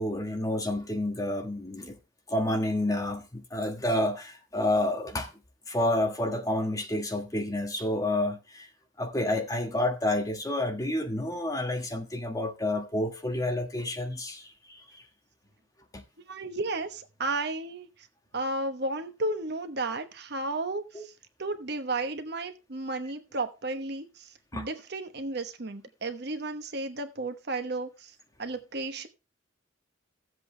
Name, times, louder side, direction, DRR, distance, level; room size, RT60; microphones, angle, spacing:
voice 1, 0.0-2.0 2.3-5.3 5.7-8.7 9.0-15.0 15.9-16.0 20.9-21.0 24.5-24.7, left 1 dB, 15° left, 1.5 m, -29 dB
voice 2, 16.3-18.1 18.3-21.1 21.4-29.1, right 2 dB, 55° right, 1.1 m, -33 dB
15.0 x 7.8 x 3.3 m
head